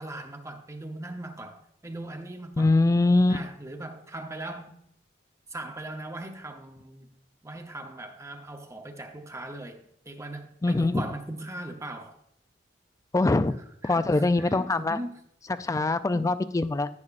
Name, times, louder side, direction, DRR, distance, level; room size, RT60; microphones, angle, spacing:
voice 1, 0.0-2.7 3.3-4.7 5.5-7.1 7.4-12.2 13.8-15.2 16.1-16.3, right 1 dB, 15° right, 5 dB, 0.9 m, -39 dB
voice 2, 2.6-3.4 10.6-11.1 13.1-13.5 13.8-15.0 15.5-16.9, left 2 dB, 20° left, 13 dB, 0.3 m, -23 dB
10.5 x 9.8 x 2.5 m, 0.71 s
head